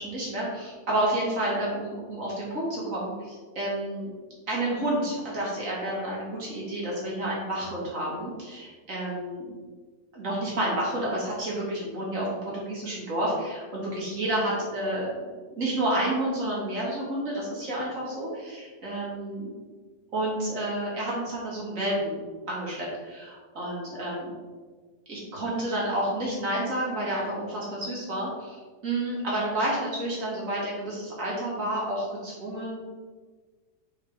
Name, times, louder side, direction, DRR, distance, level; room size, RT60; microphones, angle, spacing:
voice 1, 0.0-4.1 4.5-9.5 10.1-19.5 20.1-24.3 25.1-32.8, right 1 dB, 55° right, -5 dB, 2.3 m, -30 dB
5.6 x 5.2 x 3.5 m, 1.4 s
omnidirectional pair, 1.7 m